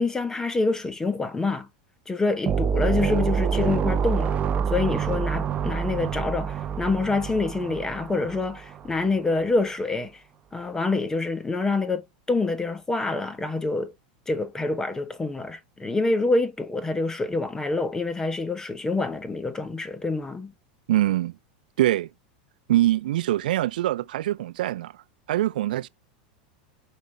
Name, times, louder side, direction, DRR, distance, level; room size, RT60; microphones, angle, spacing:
voice 1, 0.0-1.7 2.1-4.4 4.7-10.2 10.5-13.9 14.3-20.5, left 3 dB, 10° left, 1.2 m, -26 dB
sound 1, 2.5-8.9, right 7 dB, 25° right, 0.7 m, -27 dB
voice 2, 20.9-21.3 21.8-22.1 22.7-24.9 25.3-25.9, right 14 dB, 80° right, 0.3 m, -23 dB
5.1 x 4.6 x 5.4 m
supercardioid pair, 120°, 5 cm